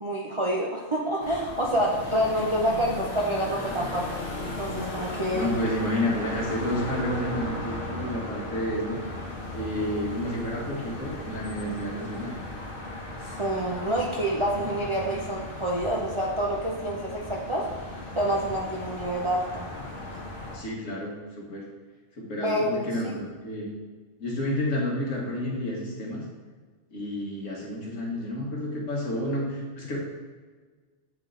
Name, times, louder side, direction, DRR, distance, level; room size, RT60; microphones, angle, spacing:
voice 1, 0.0-5.5 13.3-17.6 18.2-19.7 22.4-23.1, right 1 dB, 30° right, -3 dB, 0.6 m, -28 dB
sound 1, 1.2-20.6, left 2 dB, 45° left, 1.2 m, -36 dB
voice 2, 5.3-9.0 9.5-12.4 20.5-21.6 22.2-23.7 24.2-26.2 26.9-30.0, left 1 dB, 70° left, -3 dB, 1.8 m, -30 dB
8.5 x 3.6 x 3.8 m, 1.4 s
omnidirectional pair, 1.4 m